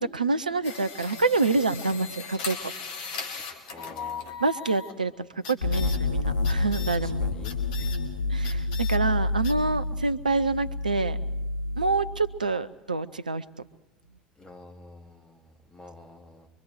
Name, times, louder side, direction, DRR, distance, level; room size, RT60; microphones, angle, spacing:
voice 1, 0.0-2.6 4.4-7.2 8.3-11.2 11.8-13.4, right 3 dB, 90° right, 13 dB, 0.6 m, -27 dB
sound 1, 0.6-5.0 5.4-6.0 6.4-7.0 7.4-8.0 8.4-9.0 9.4-9.5, left 5 dB, 65° left, 2.2 m, -38 dB
voice 2, 3.7-4.3 6.7-7.6 14.4-16.5, left 1 dB, 15° left, 3 dB, 2.6 m, -49 dB
sound 2, 5.6-12.4, left 2 dB, 85° left, 1.1 m, -28 dB
23.5 x 23.0 x 4.8 m, 1.0 s
figure-of-eight pair, 70°, 4 cm